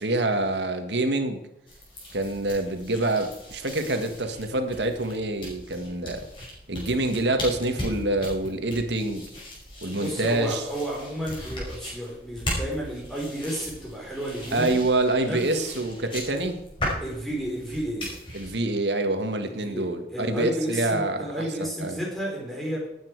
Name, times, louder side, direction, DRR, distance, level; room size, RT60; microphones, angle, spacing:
voice 1, 0.0-1.4 2.1-6.2 6.7-9.3 9.8-10.6 14.5-16.6 18.3-21.3 21.6-22.0, right 2 dB, 85° right, 6 dB, 1.7 m, -26 dB
sound 1, 1.7-18.5, left 1 dB, 30° left, 5.4 m, -38 dB
voice 2, 9.9-14.8 15.2-15.5 17.0-18.1 19.4-22.9, right 1 dB, ahead, -3 dB, 4.2 m, -32 dB
18.5 x 8.9 x 4.7 m, 0.86 s
head